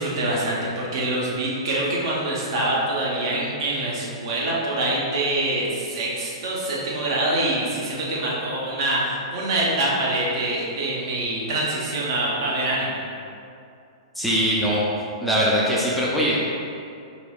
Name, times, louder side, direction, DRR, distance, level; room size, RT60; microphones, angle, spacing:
voice 1, 0.0-13.0, right 1 dB, 50° right, -4 dB, 0.8 m, -25 dB
voice 2, 14.2-14.9 15.2-16.4, equal, ahead, -7 dB, 0.4 m, -21 dB
4.0 x 2.9 x 2.3 m, 2.5 s
figure-of-eight pair, 105°, 3 cm